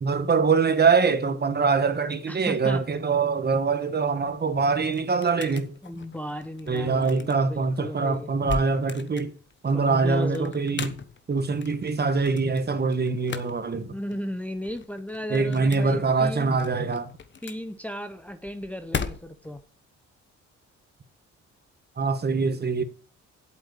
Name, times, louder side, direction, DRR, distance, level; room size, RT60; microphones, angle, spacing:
voice 1, 0.0-5.7 6.7-9.3 9.6-10.9 11.3-14.0 15.3-17.1 22.0-22.8, right 4 dB, 35° right, 1.5 m, -24 dB
voice 2, 2.3-2.8 5.8-8.3 9.7-10.6 13.9-16.5 17.4-19.6, equal, 5° left, 0.9 m, -35 dB
sound 1, 4.3-19.6, left 5 dB, 40° left, 1.2 m, -40 dB
8.2 x 8.0 x 8.3 m
cardioid pair, 90°, 30 cm